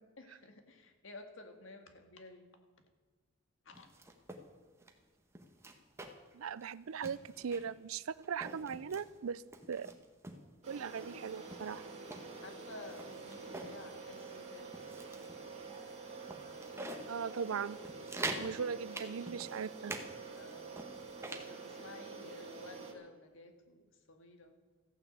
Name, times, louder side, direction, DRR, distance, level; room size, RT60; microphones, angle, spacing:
voice 1, 0.2-2.5 3.6-3.9 12.4-14.8 20.3-20.8 21.4-24.6, left 2 dB, 65° left, 1.9 m, -53 dB
sound 1, 3.7-4.4 4.8-4.9 5.4-6.3 6.6-6.7 7.0-7.8 8.2-9.1 9.5-10.4 11.0-11.1 11.5-13.8 14.1-14.3 14.7-15.4 15.8-15.9 16.3-17.1 17.5-17.6 17.9-18.5 18.9-20.1 20.4-21.5, right 2 dB, 15° right, 1.3 m, -44 dB
voice 2, 6.3-9.4 9.7-9.9 10.7-11.8 17.1-17.8 18.3-19.9, right 6 dB, 85° right, 0.5 m, -39 dB
sound 2, 10.6-22.9, right 4 dB, 35° right, 2.6 m, -48 dB
14.5 x 10.0 x 7.9 m
head